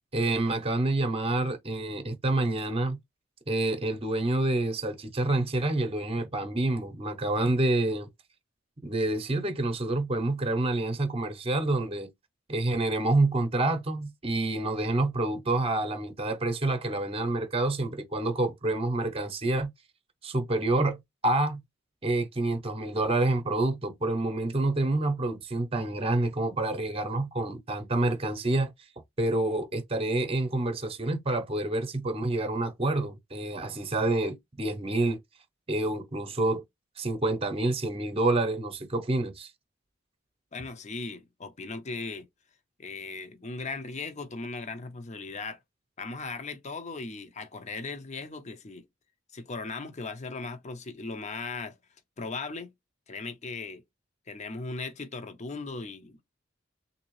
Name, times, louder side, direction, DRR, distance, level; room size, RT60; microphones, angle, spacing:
voice 1, 0.1-3.0 3.5-8.1 8.8-12.1 12.5-19.7 20.2-21.6 22.0-28.7 29.2-35.2 35.7-36.6 37.0-39.5, right 2 dB, 30° right, 0.8 m, -28 dB
voice 2, 40.5-42.3 42.8-45.6 46.0-48.8 49.3-51.8 52.2-52.7 53.1-53.8 54.3-56.2, left 3 dB, 35° left, 0.7 m, -38 dB
3.5 x 2.7 x 3.1 m
head